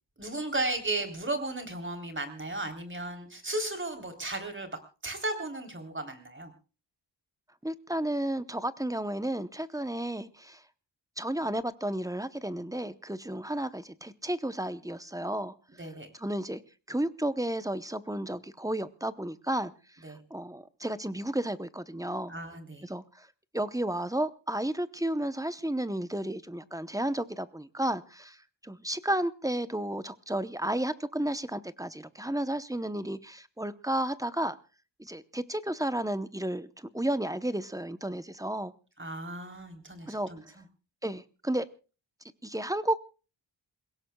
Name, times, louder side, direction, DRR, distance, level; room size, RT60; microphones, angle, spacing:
voice 1, 0.2-6.5 15.8-16.1 20.0-20.2 22.3-22.9 39.0-40.6, right 2 dB, 25° right, 6 dB, 3.5 m, -35 dB
voice 2, 7.6-10.6 11.2-15.5 16.2-16.6 16.9-19.7 20.0-22.3 22.8-23.3 23.5-28.4 28.6-34.6 35.0-38.7 40.1-40.3 41.0-41.7 42.4-43.0, right 1 dB, 10° right, 12 dB, 0.8 m, -32 dB
28.5 x 17.0 x 2.3 m, 0.35 s
wide cardioid pair, 120°, 45 cm